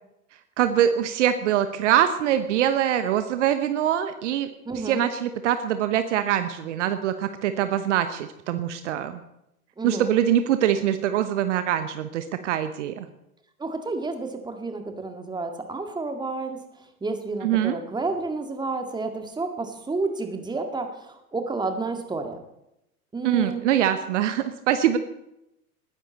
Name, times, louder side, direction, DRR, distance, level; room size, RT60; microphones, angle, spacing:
voice 1, 0.6-4.5 4.8-9.2 9.8-13.1 17.4-17.8 23.2-25.0, right 10 dB, 55° right, 10 dB, 1.1 m, -23 dB
voice 2, 4.7-5.1 9.8-10.2 13.6-22.4 23.1-23.6, right 3 dB, 10° right, 5 dB, 1.9 m, -31 dB
20.0 x 10.0 x 4.1 m, 0.84 s
figure-of-eight pair, 90°, 44 cm